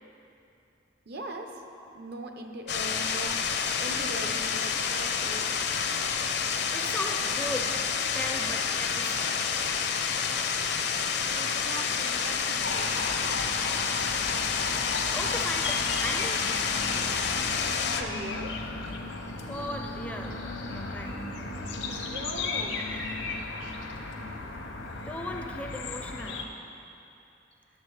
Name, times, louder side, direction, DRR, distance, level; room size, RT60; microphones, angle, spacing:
voice 1, 1.1-1.5 1.9-5.6 11.2-13.1 17.9-18.7 21.8-22.9, right 1 dB, 60° right, 4 dB, 0.8 m, -40 dB
sound 1, 2.7-18.0, left 6 dB, 60° left, 0.6 m, -29 dB
voice 2, 6.7-9.5 15.0-16.6 19.5-21.4 25.1-26.6, left 1 dB, 5° left, 3 dB, 0.4 m, -38 dB
sound 2, 12.6-26.5, left 3 dB, 80° left, 0.9 m, -35 dB
11.0 x 7.0 x 4.8 m, 2.7 s
head